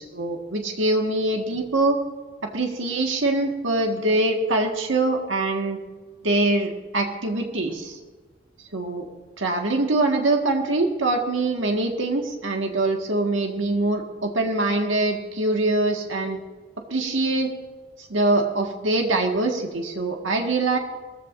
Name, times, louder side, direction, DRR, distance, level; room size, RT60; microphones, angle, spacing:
voice 1, 0.1-2.0 2.5-5.8 6.2-8.0 8.7-9.1 9.4-16.4 16.9-17.5 18.1-20.8, right 2 dB, 90° right, 2 dB, 1.7 m, -23 dB
21.0 x 15.0 x 2.6 m, 1.3 s
head